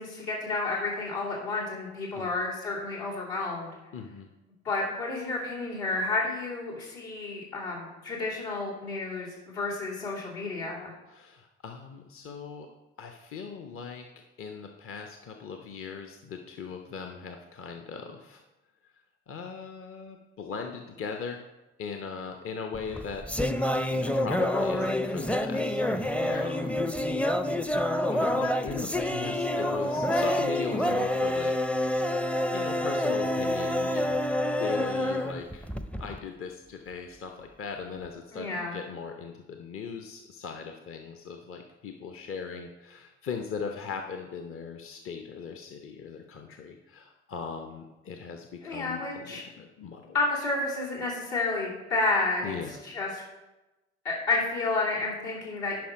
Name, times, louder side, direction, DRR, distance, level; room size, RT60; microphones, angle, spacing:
voice 1, 0.0-3.7 4.6-10.9 26.2-26.3 38.3-38.8 48.6-49.4 50.1-52.5 52.8-53.2 54.0-55.8, left 3 dB, 70° left, -6 dB, 2.8 m, -31 dB
voice 2, 3.9-4.3 11.1-12.7 13.0-18.4 18.8-18.9 19.3-21.4 21.8-23.3 23.9-26.8 28.1-31.8 32.5-35.7 36.0-50.2 52.4-52.8, left 5 dB, 40° left, 4 dB, 0.9 m, -39 dB
sound 1, 22.7-36.2, left 1 dB, 5° left, 0.6 m, -28 dB
10.5 x 5.6 x 5.0 m, 1.1 s
figure-of-eight pair, 40°, 34 cm